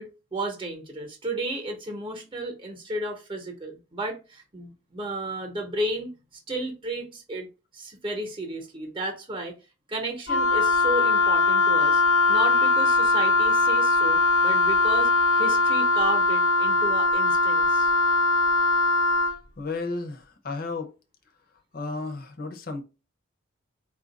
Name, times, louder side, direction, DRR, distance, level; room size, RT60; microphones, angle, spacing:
voice 1, 0.0-6.1 6.5-7.5 7.7-9.5 9.9-12.0 12.3-17.9, right 1 dB, 25° right, 0.8 m, -33 dB
Wind instrument woodwind instrument, 10.3-19.4, left 3 dB, 90° left, 0.9 m, -21 dB
voice 2, 19.6-20.9 21.7-22.8, left 3 dB, 45° left, 0.7 m, -33 dB
4.4 x 2.4 x 4.0 m
head